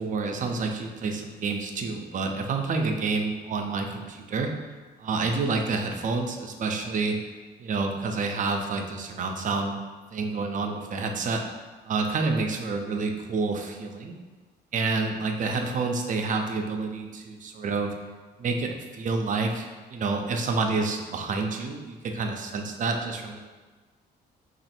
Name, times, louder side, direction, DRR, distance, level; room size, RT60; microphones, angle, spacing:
voice 1, 0.0-4.5 5.0-7.2 7.6-9.8 10.1-11.4 11.9-14.2 14.7-17.9 18.4-23.4, right 4 dB, 45° right, 4 dB, 0.5 m, -28 dB
3.1 x 2.5 x 4.3 m, 1.3 s
cardioid pair, 105°, 18 cm